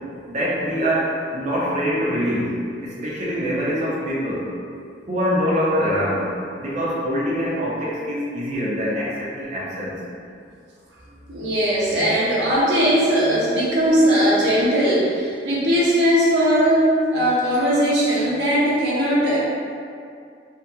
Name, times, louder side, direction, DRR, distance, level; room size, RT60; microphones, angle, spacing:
voice 1, 0.3-4.5 5.1-10.0, equal, 40° right, -6 dB, 0.5 m, -24 dB
voice 2, 11.3-16.9 17.1-19.4, equal, 85° right, -8 dB, 0.7 m, -19 dB
2.8 x 2.1 x 2.2 m, 2.3 s
head